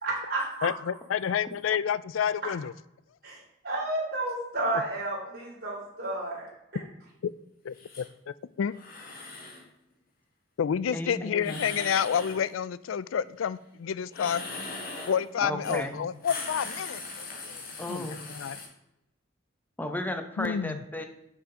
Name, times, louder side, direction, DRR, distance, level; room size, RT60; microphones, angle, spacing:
voice 1, 0.0-0.7 3.2-6.5, right 2 dB, 55° right, -4 dB, 3.1 m, -31 dB
voice 2, 0.6-2.7 7.2-7.3 7.6-8.0 8.6-8.7 10.6-14.4 15.1-17.6 17.9-18.6 20.4-20.8, left 8 dB, 85° left, 17 dB, 0.4 m, -29 dB
sound 1, 7.7-8.1 8.7-9.6 11.4-12.4 14.1-15.2 15.6-15.8 16.1-18.6, left 3 dB, 50° left, 2.1 m, -40 dB
voice 3, 10.9-11.6 15.4-16.0 17.8-18.3 19.8-21.1, left 1 dB, 10° left, 6 dB, 0.8 m, -34 dB
7.4 x 6.4 x 4.9 m, 0.84 s
head